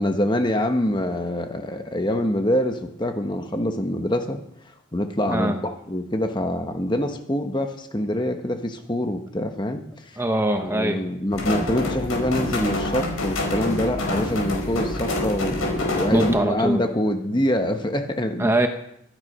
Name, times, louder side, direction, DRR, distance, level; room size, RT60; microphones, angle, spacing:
voice 1, 0.0-4.4 4.9-10.2 10.6-18.5, left 1 dB, 20° left, 6 dB, 1.1 m, -25 dB
voice 2, 10.2-11.0 16.1-16.8 18.4-18.7, right 1 dB, 10° right, 6 dB, 1.0 m, -22 dB
sound 1, 11.3-16.3, left 2 dB, 80° left, 5.1 m, -26 dB
24.0 x 9.7 x 5.4 m, 0.77 s
head